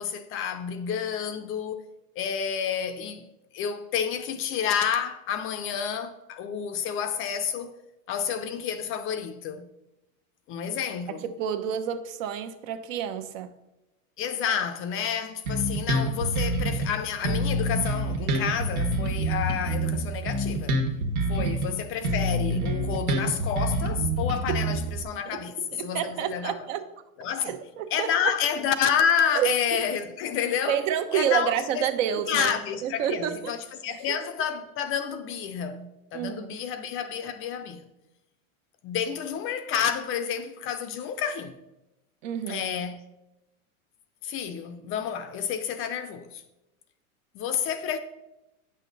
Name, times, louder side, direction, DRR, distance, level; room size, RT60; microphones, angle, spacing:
voice 1, 0.0-1.8 2.2-3.3 3.5-7.7 8.1-9.7 10.5-11.2 14.2-20.8 21.3-25.5 25.8-26.6 27.2-27.6 27.9-30.8 31.1-31.9 32.3-37.9 38.8-41.5 42.5-43.0 44.2-46.4 47.3-48.0, left 8 dB, 30° left, 0.5 m, -29 dB
voice 2, 11.1-13.5 21.3-21.5 24.7-24.8 25.3-25.4 25.7-26.9 27.4-28.3 29.2-29.5 30.7-32.5 32.8-33.5 33.9-34.2 36.1-36.5 42.2-42.7, right 9 dB, 60° right, 1.0 m, -29 dB
Bass guitar, 15.4-16.9 17.2-21.7 22.0-25.0, right 1 dB, 80° right, 1.7 m, -27 dB
8.6 x 6.3 x 3.9 m
supercardioid pair, 120°, 43 cm